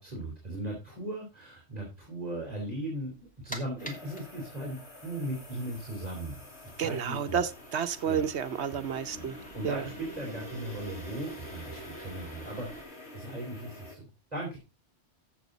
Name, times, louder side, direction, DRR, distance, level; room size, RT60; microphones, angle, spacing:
voice 1, 0.0-3.1 3.4-6.4 6.8-7.4 8.0-8.2 8.7-8.8 9.1-9.3 9.5-12.8 13.1-14.6, right 1 dB, 35° right, -1 dB, 4.1 m, -38 dB
sound 1, 3.1-12.8, right 1 dB, 5° left, 2.4 m, -50 dB
sound 2, 3.8-14.0, left 1 dB, 60° left, 3.1 m, -47 dB
voice 2, 6.8-9.4 9.6-9.9, right 8 dB, 65° right, 11 dB, 1.1 m, -31 dB
15.0 x 7.3 x 4.0 m, 0.30 s
omnidirectional pair, 1.2 m